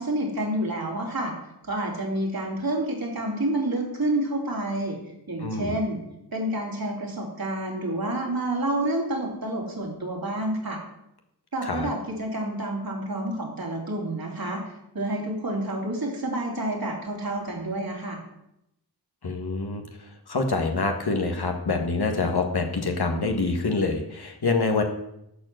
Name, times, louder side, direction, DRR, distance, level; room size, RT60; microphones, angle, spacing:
voice 1, 0.0-1.3 1.6-5.0 5.3-6.0 6.3-10.8 11.5-14.6 14.9-18.2, right 1 dB, 60° right, -2 dB, 3.4 m, -29 dB
voice 2, 5.4-5.7 11.6-11.9 19.2-19.8 20.3-24.8, left 3 dB, 70° left, 4 dB, 1.7 m, -26 dB
11.5 x 4.6 x 7.7 m, 0.81 s
cardioid pair, 45°, 40 cm